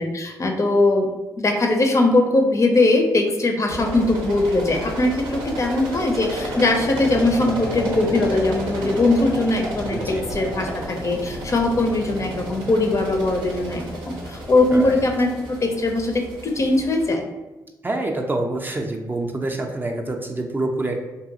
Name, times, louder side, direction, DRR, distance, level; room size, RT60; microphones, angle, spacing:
voice 1, 0.0-17.3, left 2 dB, 40° left, 3 dB, 0.5 m, -21 dB
sound 1, 3.7-17.0, right 1 dB, 85° right, 0.5 m, -31 dB
voice 2, 9.9-10.3 14.7-15.0 17.8-21.0, right 2 dB, 25° right, 2 dB, 0.4 m, -26 dB
2.6 x 2.4 x 2.7 m, 1.1 s
supercardioid pair, 55°, 8 cm